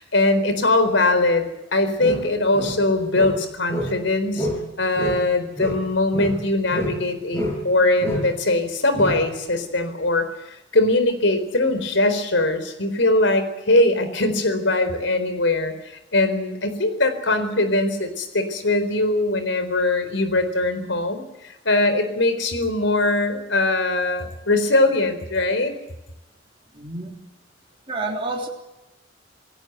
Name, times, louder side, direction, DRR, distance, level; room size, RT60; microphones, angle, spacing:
voice 1, 0.0-4.5 4.8-25.7, left 2 dB, 75° left, 10 dB, 4.2 m, -21 dB
sound 1, 2.0-4.1 4.3-4.7 5.0-7.0 7.3-7.7 8.0-8.3 8.9-9.3, equal, 15° left, 6.1 m, -28 dB
voice 2, 26.7-27.2 27.9-28.5, right 2 dB, 30° right, 0 dB, 3.5 m, -29 dB
28.0 x 17.5 x 8.1 m, 1.0 s
head